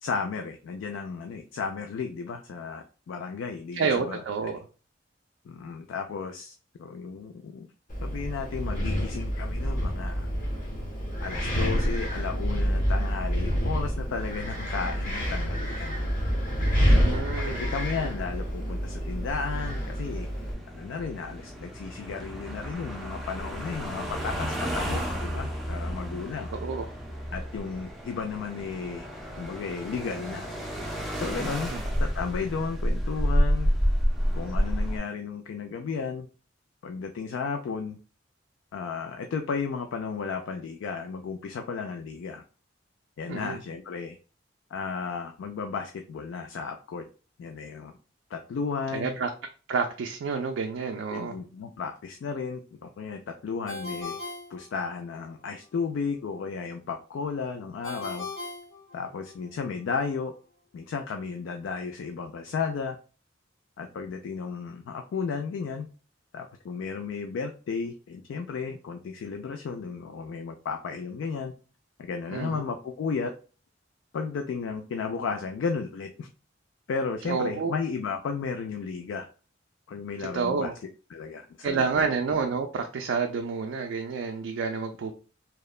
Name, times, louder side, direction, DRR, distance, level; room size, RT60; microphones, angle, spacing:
voice 1, 0.0-4.2 5.5-7.7 8.0-10.3 11.2-16.0 16.9-20.3 20.7-26.5 27.3-29.1 29.4-30.5 31.2-31.7 32.0-33.7 34.3-36.3 36.8-38.0 38.7-42.4 43.2-44.2 44.7-47.0 47.4-47.9 48.3-49.2 51.1-54.2 54.5-58.3 58.9-60.3 60.7-63.0 63.8-65.9 66.3-71.5 72.0-73.3 74.1-76.3 76.9-79.3 79.9-80.7 81.1-82.1, left 5 dB, 80° left, 5 dB, 0.3 m, -34 dB
voice 2, 3.7-4.6 16.9-17.6 26.5-26.8 31.7-31.8 43.3-43.6 48.9-49.3 49.7-51.4 72.3-72.6 77.2-77.7 80.3-80.7 81.6-85.1, right 5 dB, 75° right, 4 dB, 0.3 m, -29 dB
Wind, 7.9-20.5, equal, 40° left, 0.7 m, -28 dB
sound 1, 17.5-35.0, equal, ahead, 0.3 m, -31 dB
Ringtone, 53.7-55.3 57.8-59.5, left 3 dB, 65° left, 1.0 m, -39 dB
2.9 x 2.1 x 2.3 m, 0.37 s
head